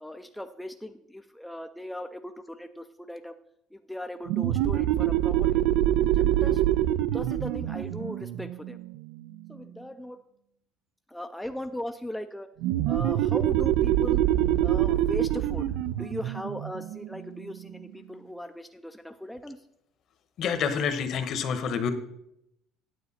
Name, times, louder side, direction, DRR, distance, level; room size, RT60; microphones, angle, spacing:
voice 1, 0.0-3.4 3.7-5.6 5.9-6.6 7.0-8.8 9.5-10.2 11.1-12.5 12.9-14.2 14.6-19.6, left 1 dB, 5° left, 6 dB, 0.4 m, -38 dB
sound 1, 4.3-9.6 12.6-17.9, right 13 dB, 80° right, 0.4 m, -25 dB
voice 2, 20.4-21.9, left 6 dB, 50° left, 9 dB, 1.1 m, -28 dB
9.4 x 7.7 x 4.2 m, 0.78 s
cardioid pair, 140°, 0 cm